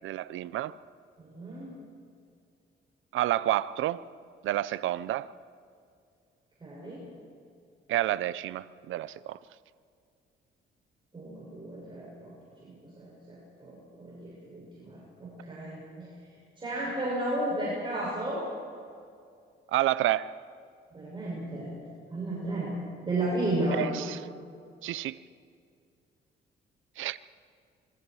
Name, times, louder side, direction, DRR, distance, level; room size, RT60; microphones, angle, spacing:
voice 1, 0.0-0.7 3.1-4.0 4.4-5.3 7.9-9.4 19.7-20.3 23.7-24.2 24.8-25.2 27.0-27.2, right 14 dB, 80° right, 0.7 m, -29 dB
voice 2, 1.2-1.7 6.6-7.0 11.1-12.3 12.7-13.4 13.7-16.1 16.6-18.4 20.9-21.7 22.1-22.7 23.0-23.8, right 1 dB, 25° right, 7.4 m, -33 dB
27.5 x 23.0 x 4.9 m
cardioid pair, 90°, 20 cm